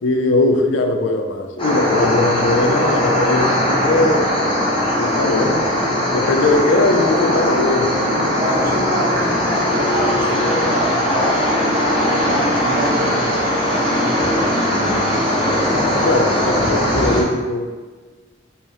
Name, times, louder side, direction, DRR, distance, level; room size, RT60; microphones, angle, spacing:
voice 1, 0.0-4.2 4.9-5.7 6.1-7.9 8.2-8.3 16.0-17.9, left 2 dB, 80° left, 4 dB, 0.4 m, -19 dB
sound 1, 1.6-17.2, left 1 dB, 30° left, 0.7 m, -19 dB
voice 2, 8.4-11.3 12.0-15.3, right 1 dB, 50° right, -1 dB, 0.7 m, -27 dB
4.2 x 2.0 x 3.6 m, 1.4 s
head